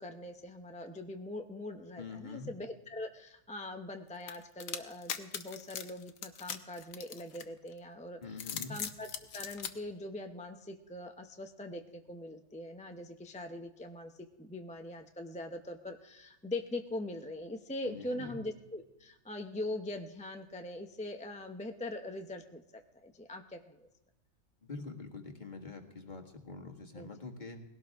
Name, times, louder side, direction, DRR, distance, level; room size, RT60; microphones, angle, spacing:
voice 1, 0.0-14.1 14.4-22.6 23.0-23.9 26.9-27.1, left 1 dB, 10° left, 5 dB, 0.4 m, -42 dB
voice 2, 2.0-2.5 8.2-8.7 17.8-18.4 24.6-27.6, left 4 dB, 35° left, 3 dB, 1.7 m, -45 dB
sound 1, 4.3-7.7 8.3-9.7, left 8 dB, 70° left, 1.3 m, -40 dB
20.0 x 17.0 x 3.5 m, 0.97 s
omnidirectional pair, 1.5 m